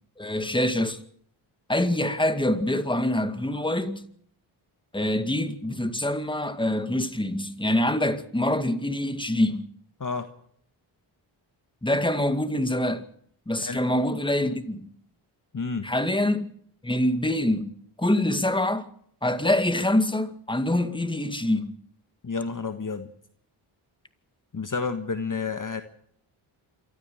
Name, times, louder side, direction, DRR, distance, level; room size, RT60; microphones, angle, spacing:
voice 1, 0.2-1.0 1.7-4.0 4.9-9.7 11.8-13.0 13.5-14.9 15.8-16.5 16.8-18.8 19.2-21.8, left 1 dB, 10° left, 2.1 m, -25 dB
voice 2, 15.5-15.9 22.2-23.1 24.5-25.8, left 4 dB, 40° left, 1.6 m, -30 dB
26.5 x 13.5 x 7.8 m
cardioid pair, 50°, 50 cm